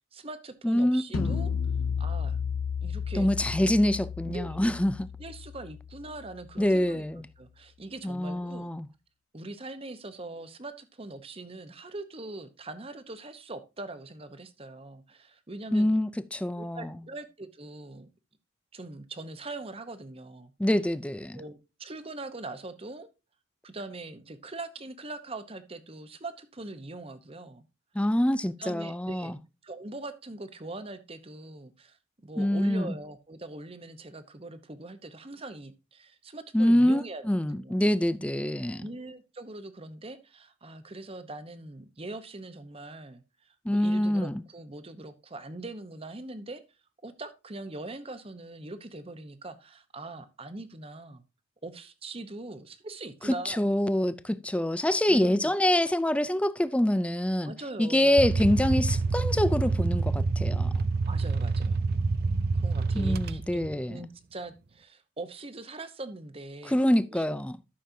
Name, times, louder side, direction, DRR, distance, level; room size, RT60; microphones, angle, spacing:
voice 1, 0.1-1.5 2.0-2.4 2.8-3.3 4.2-4.6 5.2-7.0 7.4-8.7 9.3-15.9 16.5-18.1 18.7-20.5 21.3-23.1 23.6-27.7 28.6-29.3 29.6-37.2 37.5-37.8 38.8-46.6 47.0-51.2 51.6-53.6 55.1-55.5 57.4-58.2 61.0-61.8 62.5-66.8 67.1-67.3, right 2 dB, 30° right, 1.0 m, -42 dB
voice 2, 0.6-1.4 3.2-5.1 6.6-7.3 8.0-8.9 15.7-17.0 20.6-21.4 28.0-29.4 32.4-32.9 36.5-38.9 43.7-44.4 53.3-57.5 57.8-60.7 62.9-64.1 66.7-67.6, left 1 dB, 5° left, 0.4 m, -25 dB
sound 1, 1.1-6.5, left 6 dB, 85° left, 0.6 m, -33 dB
sound 2, 58.2-63.7, right 3 dB, 50° right, 0.5 m, -27 dB
12.5 x 6.6 x 2.8 m
head